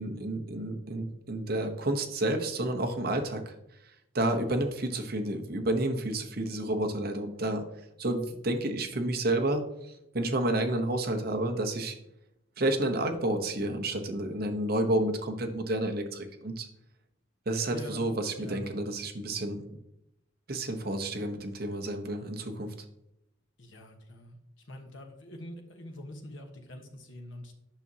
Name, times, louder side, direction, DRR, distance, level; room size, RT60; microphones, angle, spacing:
voice 1, 0.0-3.5 4.1-7.6 8.0-9.7 10.1-11.9 12.6-16.7 17.5-19.8 20.5-22.7, right 1 dB, 50° right, 4 dB, 0.9 m, -30 dB
voice 2, 17.7-18.1 18.4-18.7 23.6-24.4 24.6-27.5, left 1 dB, 70° left, 3 dB, 1.2 m, -45 dB
8.9 x 6.0 x 2.8 m, 0.83 s
head